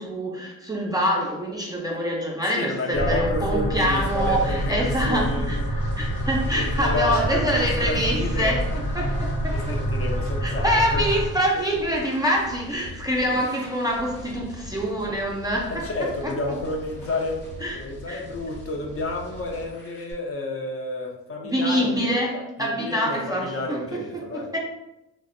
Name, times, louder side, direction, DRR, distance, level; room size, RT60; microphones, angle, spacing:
voice 1, 0.0-9.8 10.4-15.9 16.2-16.3 17.6-17.8 18.1-18.2 21.4-24.6, equal, 10° right, -3 dB, 0.4 m, -25 dB
voice 2, 2.5-5.5 6.5-8.6 9.5-11.1 13.3-13.4 15.7-17.4 17.7-24.5, left 2 dB, 45° left, 1 dB, 0.6 m, -30 dB
sound 1, 2.9-11.3, equal, 85° left, 0.8 m, -27 dB
sound 2, 3.2-20.1, left 1 dB, 65° left, 1.0 m, -42 dB
2.5 x 2.1 x 2.5 m, 0.93 s
supercardioid pair, 70°, 33 cm